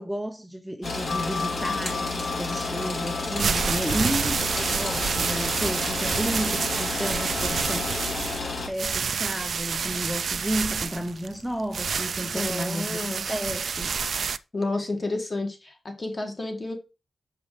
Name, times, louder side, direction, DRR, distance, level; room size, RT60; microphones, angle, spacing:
voice 1, 0.0-7.9 8.7-14.1, equal, ahead, 0.5 m, -32 dB
sound 1, 0.8-8.7, left 3 dB, 50° left, 2.9 m, -31 dB
sound 2, 1.1-6.3, left 5 dB, 90° left, 3.0 m, -37 dB
sound 3, 3.2-14.4, right 6 dB, 60° right, 0.4 m, -28 dB
voice 2, 12.3-13.2 14.5-16.7, left 2 dB, 30° left, 1.8 m, -30 dB
6.5 x 5.1 x 4.9 m
wide cardioid pair, 150°, 0 cm